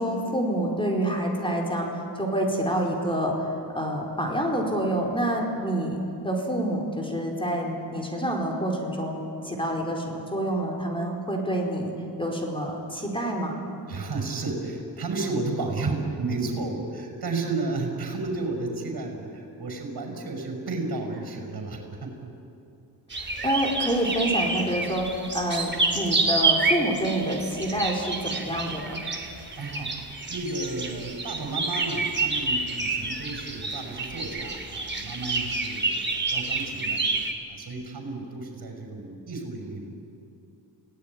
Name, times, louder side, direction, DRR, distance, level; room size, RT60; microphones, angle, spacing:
voice 1, 0.0-3.4 3.7-9.2 9.4-11.9 12.2-13.5 23.2-29.0, right 1 dB, 10° left, 0 dB, 4.7 m, -27 dB
voice 2, 13.9-22.2 29.6-37.0 37.5-39.9, right 3 dB, 60° right, 4 dB, 6.2 m, -32 dB
sound 1, 23.1-37.3, right 3 dB, 25° right, 3.1 m, -28 dB
30.0 x 18.0 x 9.8 m, 2.7 s
wide cardioid pair, 95°, 41 cm